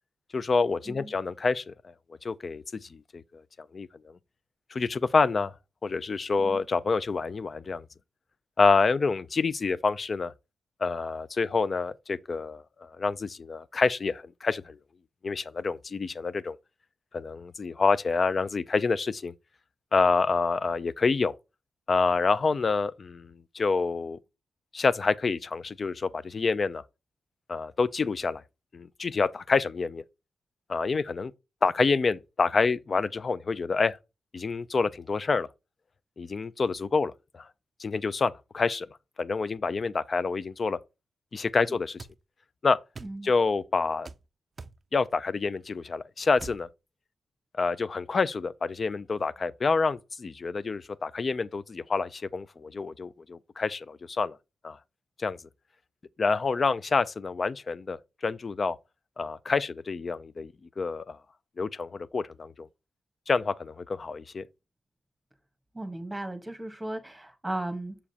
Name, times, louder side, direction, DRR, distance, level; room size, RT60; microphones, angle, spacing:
voice 1, 0.3-1.7 2.2-3.2 3.7-3.9 4.7-5.5 5.8-7.8 8.6-10.3 10.8-14.8 15.2-16.6 17.1-19.3 19.9-21.3 21.9-24.2 24.7-26.8 27.5-28.4 28.7-30.0 30.7-31.3 31.6-34.0 34.3-35.5 36.2-37.5 37.8-38.9 39.2-40.8 41.3-42.0 42.6-42.8 43.2-44.1 44.9-46.7 47.6-54.4 54.6-54.8 55.2-55.4 56.2-58.0 58.2-58.8 59.2-61.2 61.6-62.7 63.3-64.5, left 4 dB, 40° left, 0.4 m, -27 dB
sound 1, 42.0-42.2 42.9-43.2 44.0-44.2 44.6-44.8 46.4-46.6, right 4 dB, 35° right, 0.4 m, -43 dB
voice 2, 43.0-43.3 65.7-68.0, right 1 dB, 10° right, 1.2 m, -36 dB
7.0 x 4.9 x 2.8 m
cardioid pair, 105°, 0 cm